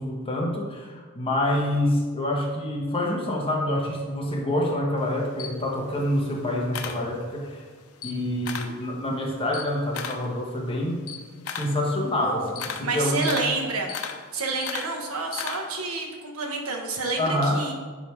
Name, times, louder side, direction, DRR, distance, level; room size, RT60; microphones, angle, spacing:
voice 1, 0.0-7.6 8.0-11.0 11.5-13.4 17.2-17.6, left 1 dB, 25° left, -2 dB, 1.2 m, -27 dB
Camera, 5.0-7.6 7.9-8.8 9.2-15.9, left 6 dB, 90° left, 0.7 m, -36 dB
voice 2, 12.2-12.5 12.8-13.9 14.3-17.7, right 3 dB, 90° right, 2 dB, 1.2 m, -29 dB
10.0 x 3.5 x 4.7 m, 1.5 s
head